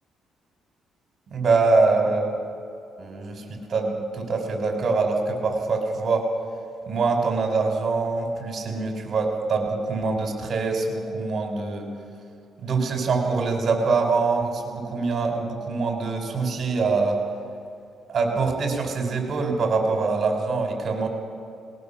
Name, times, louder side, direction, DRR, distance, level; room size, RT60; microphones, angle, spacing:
voice 1, 1.3-2.3 3.0-6.3 6.9-11.9 12.6-17.2 18.1-21.1, right 4 dB, 50° right, 3 dB, 5.2 m, -24 dB
20.5 x 18.0 x 7.3 m, 2.5 s
cardioid pair, 90°, 0 cm